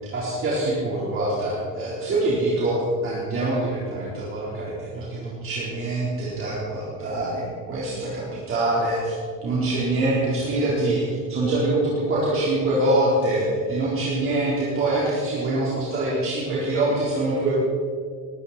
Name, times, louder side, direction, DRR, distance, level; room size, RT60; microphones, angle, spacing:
voice 1, 0.1-9.1 9.4-17.5, right 2 dB, 40° right, -7 dB, 4.0 m, -24 dB
19.5 x 13.0 x 4.3 m, 2.1 s
cardioid pair, 155°, 34 cm